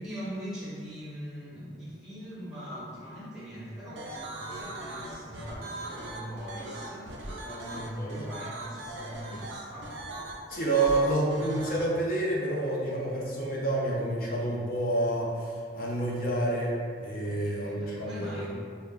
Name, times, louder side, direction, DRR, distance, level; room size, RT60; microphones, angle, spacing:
voice 1, 0.0-10.0 17.2-18.5, equal, 5° right, -10 dB, 0.6 m, -41 dB
sound 1, 4.0-11.8, right 1 dB, 80° right, 0.4 m, -40 dB
voice 2, 7.7-8.3 10.5-16.7 17.0-18.5, right 2 dB, 50° left, -4 dB, 0.5 m, -29 dB
2.1 x 2.1 x 3.3 m, 2.1 s
head